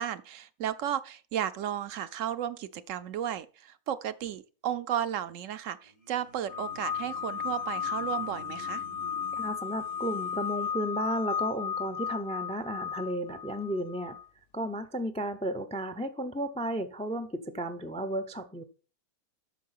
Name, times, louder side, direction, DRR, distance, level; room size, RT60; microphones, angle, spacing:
voice 1, 0.0-8.8, right 10 dB, 70° right, 0.9 m, -34 dB
sound 1, 5.8-10.7, left 2 dB, 85° left, 3.6 m, -51 dB
sound 2, 6.5-14.3, left 7 dB, 65° left, 0.6 m, -34 dB
voice 2, 9.4-14.2 14.5-18.6, right 1 dB, 10° left, 0.4 m, -33 dB
8.4 x 6.4 x 5.7 m
omnidirectional pair, 1.5 m